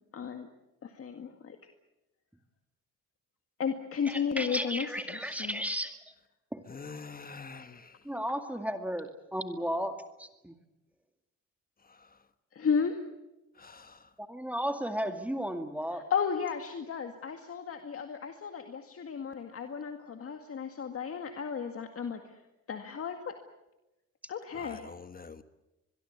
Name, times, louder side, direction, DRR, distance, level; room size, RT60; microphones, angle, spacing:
voice 1, 0.1-0.5 0.8-1.6 3.6-5.6 12.5-13.0 16.1-22.4 22.7-23.4 24.3-24.8, left 6 dB, 50° left, 2.0 m, -34 dB
voice 2, 4.0-6.1 6.5-6.7 8.0-10.6 14.2-16.1, equal, 5° right, 2.2 m, -34 dB
voice 3, 6.7-7.9 13.6-13.9 24.6-25.4, left 4 dB, 30° left, 1.4 m, -45 dB
24.0 x 22.5 x 8.2 m
cardioid pair, 90°, 30 cm